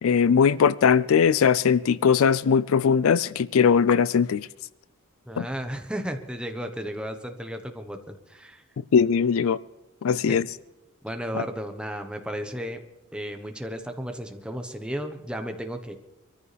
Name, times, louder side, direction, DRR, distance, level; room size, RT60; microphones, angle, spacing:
voice 1, 0.0-4.5 5.4-5.5 8.9-9.6 10.0-10.5 11.3-11.4, left 6 dB, 70° left, 0.4 m, -20 dB
voice 2, 5.3-8.6 10.3-10.4 11.0-12.8 13.1-15.9, equal, 5° right, 1.1 m, -34 dB
23.5 x 14.0 x 3.4 m
head